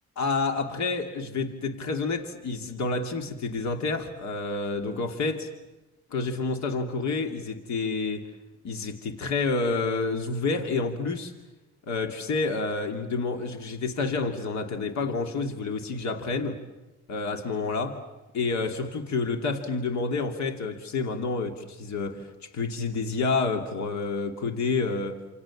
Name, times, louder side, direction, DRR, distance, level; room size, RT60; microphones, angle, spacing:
voice 1, 0.2-5.5 6.1-8.3 8.6-11.3 11.9-16.6 17.1-18.0 18.3-25.2, left 3 dB, 65° left, 2.9 m, -29 dB
28.5 x 27.5 x 7.4 m
cardioid pair, 90°, 30 cm